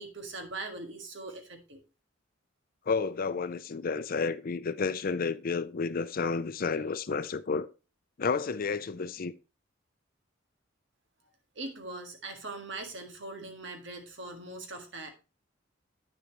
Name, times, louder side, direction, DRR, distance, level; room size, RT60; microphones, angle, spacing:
voice 1, 0.0-1.8 11.6-15.1, right 2 dB, 65° right, 1.7 m, -41 dB
voice 2, 2.9-7.7 8.2-9.3, left 4 dB, 50° left, 0.5 m, -31 dB
9.2 x 6.8 x 3.0 m
head